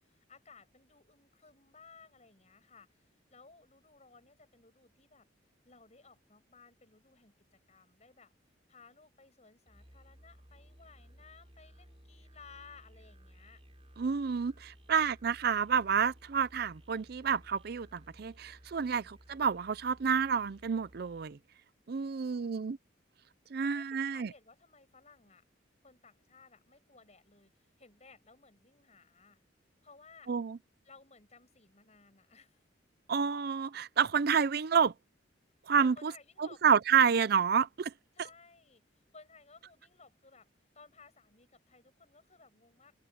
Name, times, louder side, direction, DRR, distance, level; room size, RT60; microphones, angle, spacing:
voice 1, 0.0-5.3 5.6-8.3 8.7-13.6 18.8-19.2 22.0-22.6 23.6-25.4 25.8-29.4 29.8-30.3 30.8-32.7 35.8-36.6 38.1-40.5 40.7-42.9, left 4 dB, 35° left, 8.0 m, -59 dB
Musical instrument, 9.7-21.4, equal, 30° right, 7.8 m, -58 dB
voice 2, 14.0-21.4 21.9-22.8 23.5-24.3 30.3-30.6 33.1-34.9 35.7-36.1 36.4-37.9, right 6 dB, 55° right, 0.5 m, -29 dB
head